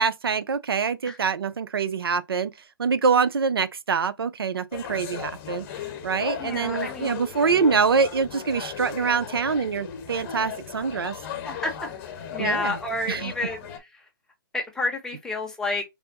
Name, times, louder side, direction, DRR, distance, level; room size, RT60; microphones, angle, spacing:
voice 1, 0.0-2.5 2.8-5.7 6.0-11.1 12.4-12.8 13.1-13.3, right 5 dB, 85° right, 0.6 m, -25 dB
sound 1, 4.7-13.8, left 8 dB, 40° left, 1.0 m, -36 dB
voice 2, 6.4-7.2 11.4-11.7 12.3-13.6 14.5-15.8, left 2 dB, 5° left, 0.9 m, -29 dB
3.4 x 2.2 x 4.0 m
hypercardioid pair, 145°, 12 cm